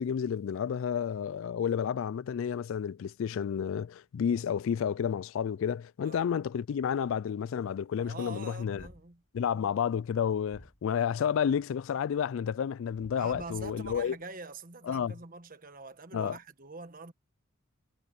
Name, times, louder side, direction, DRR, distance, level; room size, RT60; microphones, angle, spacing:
voice 1, 0.0-8.9 9.3-14.2 14.9-15.1 16.1-16.3, left 8 dB, 65° left, 0.3 m, -31 dB
voice 2, 8.0-9.8 13.1-17.1, right 3 dB, 40° right, 1.4 m, -45 dB
sound 1, 8.8-9.2 10.5-10.9 13.0-14.2, equal, 35° left, 6.6 m, -53 dB
head